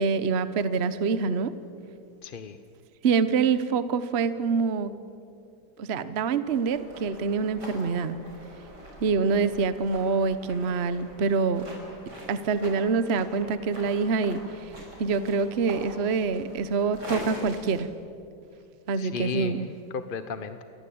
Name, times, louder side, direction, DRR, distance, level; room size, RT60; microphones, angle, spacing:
voice 1, 0.0-1.6 3.0-4.9 5.8-8.2 9.0-11.7 12.3-14.7 15.0-17.9 18.9-19.7, right 5 dB, 40° right, 13 dB, 1.1 m, -26 dB
voice 2, 2.2-2.6 19.0-20.6, left 6 dB, 40° left, 10 dB, 0.8 m, -35 dB
sound 1, 6.5-17.7, right 1 dB, 65° right, 6.3 m, -43 dB
29.0 x 23.0 x 8.7 m, 2.5 s
omnidirectional pair, 2.0 m